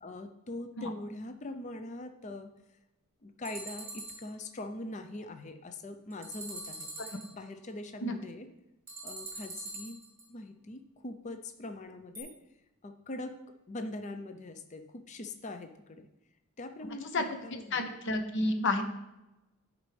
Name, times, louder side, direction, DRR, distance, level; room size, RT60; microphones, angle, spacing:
voice 1, 0.0-2.5 3.2-6.9 7.3-8.5 9.0-10.0 10.3-12.3 12.8-13.4 13.7-16.1 16.6-17.9, left 2 dB, 35° left, 7 dB, 0.5 m, -42 dB
sound 1, 3.5-4.3 6.1-7.3 8.9-10.2 12.2-12.3, right 2 dB, 10° right, 2.1 m, -43 dB
voice 2, 17.5-18.8, left 2 dB, 55° left, 6 dB, 0.8 m, -30 dB
9.9 x 5.2 x 3.3 m, 0.97 s
head